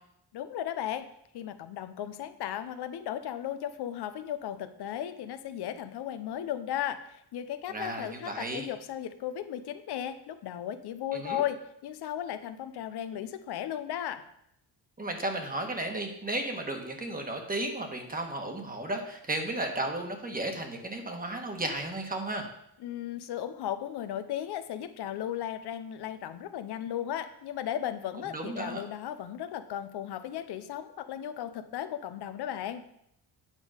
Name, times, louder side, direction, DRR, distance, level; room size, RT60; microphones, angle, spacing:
voice 1, 0.3-1.1 1.3-14.2 22.8-32.8, left 10 dB, 80° left, 10 dB, 0.7 m, -36 dB
voice 2, 7.7-8.7 11.1-11.4 15.0-22.5 28.3-28.8, right 2 dB, 20° right, 3 dB, 1.4 m, -34 dB
9.1 x 5.4 x 5.0 m, 0.76 s
cardioid pair, 115°, 39 cm